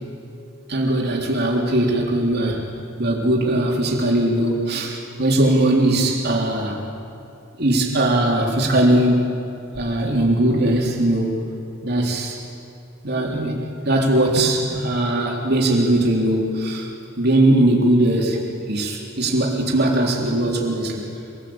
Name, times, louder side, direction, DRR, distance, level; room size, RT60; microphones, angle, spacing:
voice 1, 0.7-2.7 3.0-6.8 7.6-9.3 9.8-11.4 11.8-12.4 13.0-16.9 17.2-18.4 18.7-21.0, right 1 dB, 50° right, -1 dB, 3.8 m, -20 dB
26.0 x 19.5 x 8.9 m, 2.7 s
head